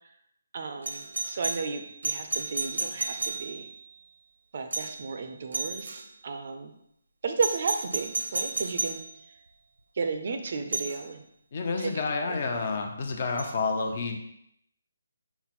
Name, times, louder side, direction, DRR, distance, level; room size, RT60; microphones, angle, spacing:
voice 1, 0.5-3.7 4.5-6.7 7.2-9.0 10.0-11.2 11.8-11.9 12.2-12.5, right 4 dB, 45° right, 6 dB, 0.5 m, -33 dB
Doorbell, 0.8-3.8 4.7-5.1 5.5-6.0 7.4-9.1 10.7-11.0 13.4-13.5, right 3 dB, 80° right, 0.7 m, -32 dB
voice 2, 11.5-14.2, left 4 dB, 40° left, 4 dB, 0.6 m, -29 dB
5.8 x 2.1 x 4.1 m, 0.76 s
hypercardioid pair, 170°, 0 cm